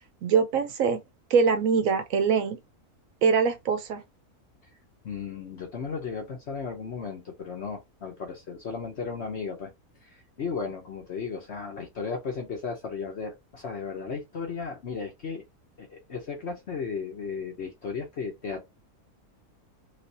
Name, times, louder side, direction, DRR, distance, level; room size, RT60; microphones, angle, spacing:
voice 1, 0.2-1.0 1.3-2.6 3.2-4.0, right 6 dB, 65° right, 1.2 m, -23 dB
voice 2, 5.0-9.7 10.0-15.4 15.8-18.6, left 5 dB, 55° left, 1.0 m, -35 dB
3.3 x 3.3 x 2.7 m
omnidirectional pair, 1.6 m